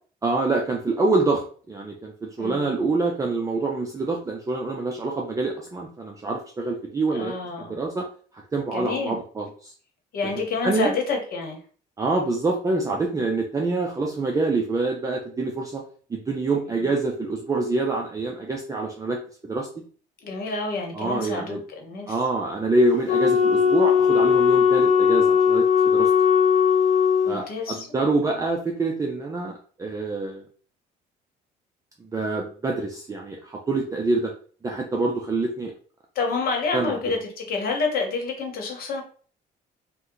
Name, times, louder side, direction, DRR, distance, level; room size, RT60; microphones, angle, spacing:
voice 1, 0.2-8.1 8.5-9.7 10.6-10.9 12.0-15.8 16.1-19.7 20.9-21.6 22.1-26.1 27.2-30.4 32.1-34.3 34.6-35.7 36.7-37.0, right 3 dB, 20° right, 0 dB, 0.5 m, -26 dB
voice 2, 2.4-2.7 7.1-7.8 8.7-9.2 10.1-11.6 16.8-16.9 20.2-22.2 27.2-27.9 36.1-39.0, left 4 dB, 60° left, 3 dB, 1.0 m, -28 dB
Wind instrument woodwind instrument, 23.1-27.4, left 7 dB, 45° left, 0.4 m, -18 dB
2.8 x 2.1 x 3.7 m, 0.43 s
cardioid pair, 110°, 17 cm